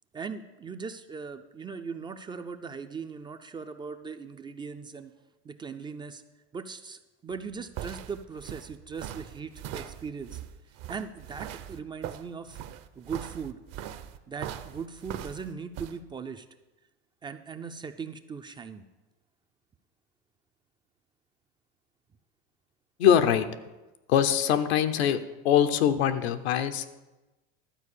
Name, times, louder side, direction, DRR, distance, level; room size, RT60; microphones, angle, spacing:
voice 1, 0.1-5.1 5.4-6.2 6.5-10.4 10.9-12.6 13.0-13.6 14.3-16.5 17.2-18.8, right 5 dB, 15° right, 9 dB, 0.3 m, -39 dB
sound 1, 7.3-16.0, right 11 dB, 50° right, 0.7 m, -41 dB
voice 2, 23.0-23.5 24.1-25.2 25.4-26.9, left 9 dB, 90° left, 8 dB, 0.9 m, -23 dB
12.0 x 4.5 x 8.4 m, 1.1 s
supercardioid pair, 125°, 31 cm